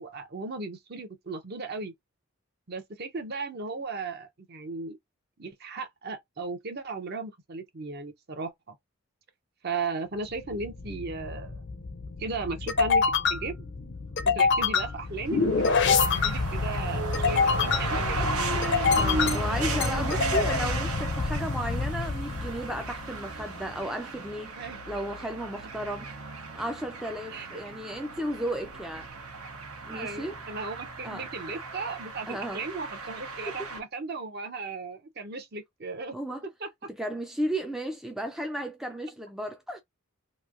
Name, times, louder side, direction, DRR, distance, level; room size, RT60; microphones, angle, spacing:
voice 1, 0.0-1.9 2.7-5.0 5.4-8.8 9.6-11.6 12.2-13.0 13.3-13.7 14.2-15.4 15.8-18.3 18.5-18.7 19.7-19.8 24.6-24.8 27.3-27.6 29.9-36.2 36.6-36.7, right 4 dB, 45° right, 0.7 m, -36 dB
sound 1, 10.4-23.1, left 4 dB, 55° left, 0.5 m, -27 dB
sound 2, 15.2-33.8, right 3 dB, 85° right, 1.0 m, -36 dB
voice 2, 19.0-24.6 24.9-26.1 26.6-29.1 29.8-30.4 31.0-31.3 32.3-32.7 36.1-36.4 36.9-39.8, equal, ahead, 0.3 m, -34 dB
3.0 x 2.6 x 2.4 m
head